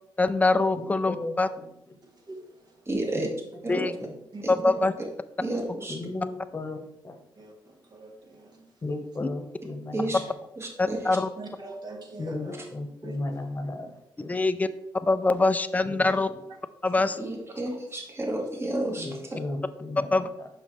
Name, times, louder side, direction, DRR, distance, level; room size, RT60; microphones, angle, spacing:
voice 1, 0.2-1.5 3.7-3.9 4.5-4.9 9.2-9.3 10.8-11.3 14.3-14.7 15.0-16.3 16.8-17.2 20.1-20.2, left 3 dB, 15° left, 12 dB, 0.4 m, -23 dB
voice 2, 0.7-2.0 3.1-3.3 3.6-4.1 5.9-7.2 8.8-10.3 12.2-14.4 15.8-16.4 18.9-20.5, left 2 dB, 30° left, 5 dB, 1.0 m, -36 dB
voice 3, 2.0-3.3 3.7-3.9 4.3-4.9 7.4-8.8 11.0-12.6 13.0-13.2 16.0-16.2 16.9-17.2 17.8-18.0, right 2 dB, 50° right, 2 dB, 1.4 m, -44 dB
voice 4, 2.9-3.3 3.6-3.9 4.4-4.5 5.4-6.0 9.9-10.2 10.6-11.2 17.2-19.1, right 1 dB, 30° right, 1 dB, 1.6 m, -31 dB
6.2 x 5.2 x 3.2 m, 0.82 s
cardioid pair, 75°, 9 cm